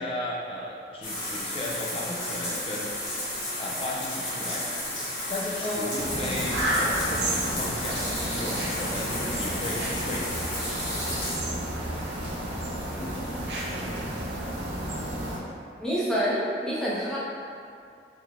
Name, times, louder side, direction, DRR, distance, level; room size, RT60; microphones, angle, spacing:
voice 1, 0.0-3.0 3.6-4.7 5.3-8.0 8.4-10.3, left 1 dB, 30° left, -4 dB, 0.4 m, -35 dB
sound 1, 1.0-11.4, left 1 dB, 75° left, 1.5 m, -33 dB
sound 2, 6.0-15.4, right 1 dB, 75° right, 0.7 m, -31 dB
voice 2, 15.8-17.2, equal, 5° left, -9 dB, 0.7 m, -28 dB
3.8 x 3.4 x 3.1 m, 2.4 s
head